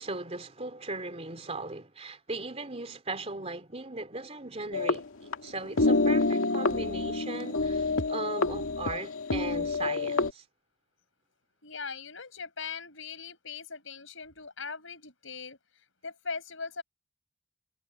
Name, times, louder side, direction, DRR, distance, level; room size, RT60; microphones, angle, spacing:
voice 1, 0.0-10.4, right 3 dB, 30° right, 3.0 m, -38 dB
sound 1, 4.7-5.5 5.8-10.3, left 3 dB, 85° left, 2.1 m, -27 dB
voice 2, 11.6-15.6 16.0-16.8, left 5 dB, 65° left, 6.0 m, -40 dB
head